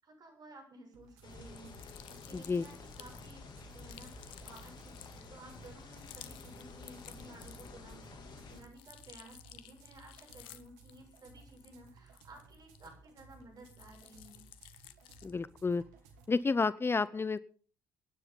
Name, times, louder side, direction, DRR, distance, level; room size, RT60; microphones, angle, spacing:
voice 1, 0.0-14.4, right 2 dB, 50° right, 2 dB, 7.3 m, -55 dB
sound 1, 0.9-16.3, right 3 dB, 80° right, 2.3 m, -59 dB
sound 2, 1.2-8.6, left 4 dB, 55° left, 2.9 m, -51 dB
sound 3, 1.5-7.9 8.3-13.2 13.6-15.4, left 14 dB, 70° left, 1.0 m, -55 dB
voice 2, 2.3-2.6 15.2-15.8 16.3-17.4, left 4 dB, 25° left, 18 dB, 0.6 m, -31 dB
24.0 x 10.0 x 4.0 m, 0.42 s
hypercardioid pair, 50°, 9 cm